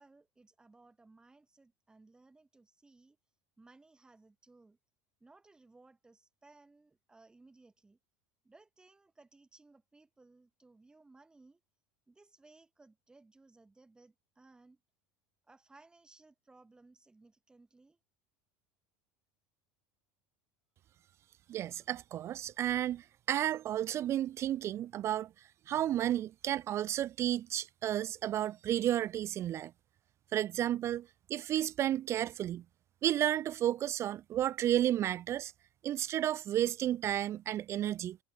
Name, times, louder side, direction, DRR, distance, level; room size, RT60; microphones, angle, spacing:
voice 1, 0.0-3.2 3.6-4.8 5.2-8.0 8.4-11.6 12.1-14.8 15.4-18.0, right 3 dB, 10° right, 5.2 m, -61 dB
voice 2, 21.5-25.3 25.7-29.7 30.3-32.6 33.0-35.5 35.8-38.2, right 12 dB, 30° right, 0.4 m, -32 dB
supercardioid pair, 155°, 9 cm